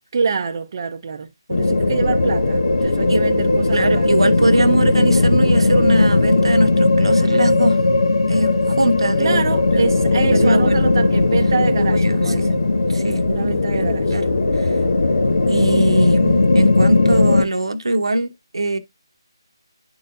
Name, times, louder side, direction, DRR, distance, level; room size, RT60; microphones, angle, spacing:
voice 1, 0.1-4.1 9.2-12.6 13.2-14.2, right 5 dB, 45° right, 0.6 m, -25 dB
sound 1, 1.5-17.4, left 2 dB, 70° left, 1.2 m, -17 dB
voice 2, 3.7-7.8 8.3-9.4 9.7-9.9 10.3-10.9 11.8-12.5 12.9-14.2 14.5-14.8 15.5-18.8, right 1 dB, 80° right, 0.9 m, -22 dB
11.0 x 4.0 x 2.4 m
figure-of-eight pair, 155°, 3 cm